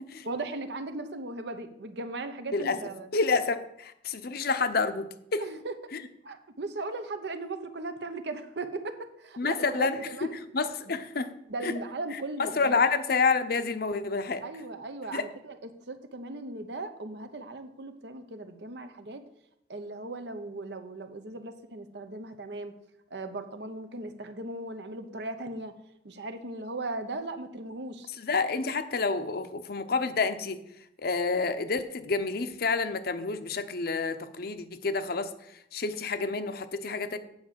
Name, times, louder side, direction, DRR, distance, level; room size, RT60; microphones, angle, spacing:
voice 1, 0.2-3.1 5.4-5.7 6.2-10.3 10.9-11.0 11.5-12.8 14.4-15.6 15.9-19.2 19.7-22.7 23.1-25.7 26.0-28.1, right 2 dB, 65° right, 9 dB, 0.9 m, -38 dB
voice 2, 3.1-5.4 5.9-6.0 9.4-10.3 10.5-11.3 11.6-11.7 12.4-14.4 15.1-15.2 28.2-30.6 31.0-35.3 35.7-37.2, left 4 dB, 55° left, 10 dB, 0.7 m, -28 dB
8.8 x 5.0 x 7.4 m, 0.80 s
head